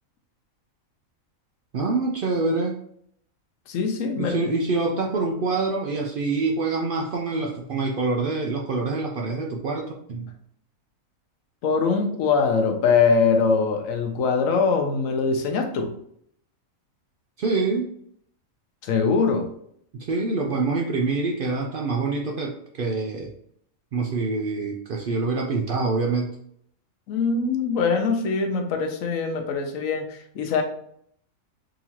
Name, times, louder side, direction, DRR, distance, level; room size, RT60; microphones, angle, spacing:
voice 1, 1.7-2.8 4.2-10.3 17.4-17.9 20.0-23.3 23.9-26.3, right 3 dB, 75° right, 0 dB, 0.5 m, -26 dB
voice 2, 3.7-4.4 11.6-15.9 18.8-19.5 27.1-30.6, left 5 dB, 75° left, 4 dB, 1.0 m, -22 dB
3.9 x 2.7 x 2.9 m, 0.67 s
omnidirectional pair, 1.4 m